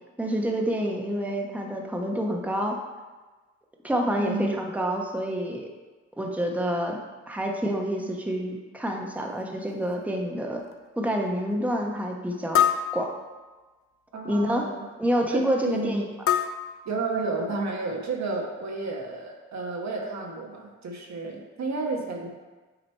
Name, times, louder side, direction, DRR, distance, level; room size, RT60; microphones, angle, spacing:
voice 1, 0.2-2.8 3.8-5.7 6.2-7.0 7.3-10.6 11.0-12.6 12.9-13.1 14.2-14.6 15.0-16.0, equal, 5° right, 1 dB, 1.0 m, -27 dB
voice 2, 4.2-4.5 14.1-14.9 15.3-16.0 16.8-22.3, right 3 dB, 65° right, 0 dB, 1.2 m, -31 dB
sound 1, 9.2-9.3 9.9-10.0 10.6-10.7 12.5-13.7 16.3-17.5, left 9 dB, 50° left, 0.5 m, -27 dB
8.0 x 2.9 x 4.5 m, 1.3 s
supercardioid pair, 50°, 29 cm